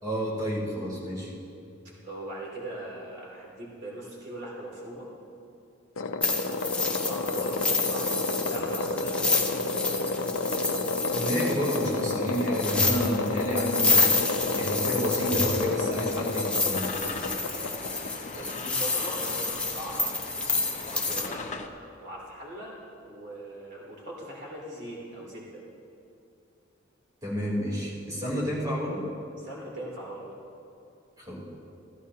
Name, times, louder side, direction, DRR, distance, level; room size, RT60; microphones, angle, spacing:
voice 1, 0.0-1.3 11.1-14.0 14.5-16.9 27.2-29.1 31.2-31.4, equal, 20° right, -6 dB, 3.4 m, -30 dB
voice 2, 2.0-5.1 6.3-10.0 17.4-20.2 20.6-21.5 22.0-25.6 29.4-30.3, right 1 dB, 60° right, -5 dB, 2.7 m, -41 dB
sound 1, 6.0-18.6, left 3 dB, 80° left, 0.6 m, -30 dB
sound 2, 6.2-21.3, left 3 dB, 5° left, 0.7 m, -29 dB
sound 3, 12.7-21.7, left 3 dB, 40° left, 0.7 m, -40 dB
16.0 x 14.5 x 2.8 m, 2.6 s
head